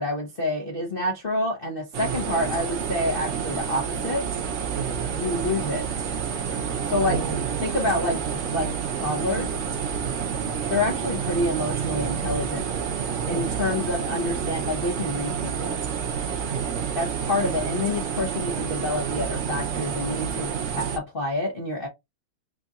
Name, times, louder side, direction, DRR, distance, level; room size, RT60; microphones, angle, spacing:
voice 1, 0.0-4.2 5.1-5.8 6.8-9.5 10.7-12.6 13.3-15.7 17.0-21.9, left 2 dB, 50° left, 0.6 m, -28 dB
sound 1, 1.9-21.0, right 7 dB, 85° right, 0.6 m, -29 dB
voice 2, 4.7-5.1 7.1-7.7 10.0-10.4 13.3-13.7 16.5-16.9, right 6 dB, 65° right, 1.3 m, -34 dB
3.8 x 2.4 x 3.9 m
omnidirectional pair, 2.3 m